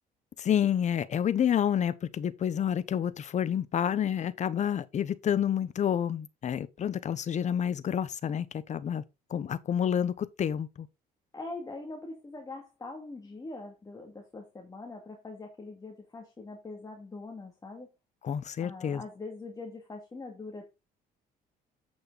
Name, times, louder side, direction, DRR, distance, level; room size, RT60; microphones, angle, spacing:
voice 1, 0.4-9.0 9.3-10.9 18.2-19.0, left 9 dB, 45° left, 1.0 m, -29 dB
voice 2, 11.3-17.9 18.6-20.7, left 3 dB, 20° left, 2.3 m, -43 dB
8.4 x 6.4 x 4.0 m
cardioid pair, 110°, 17 cm